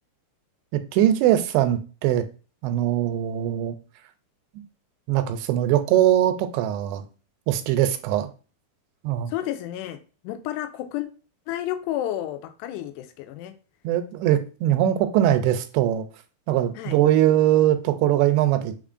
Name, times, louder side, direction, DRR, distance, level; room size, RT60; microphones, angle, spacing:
voice 1, 0.7-2.3 2.6-3.8 4.5-4.6 5.1-7.0 7.5-8.3 9.0-9.3 13.8-16.1 16.5-18.8, right 12 dB, 85° right, 2.7 m, -21 dB
voice 2, 9.3-10.0 10.2-11.1 11.5-13.5 16.8-17.0, left 12 dB, 85° left, 2.7 m, -31 dB
5.9 x 3.6 x 2.5 m
omnidirectional pair, 4.8 m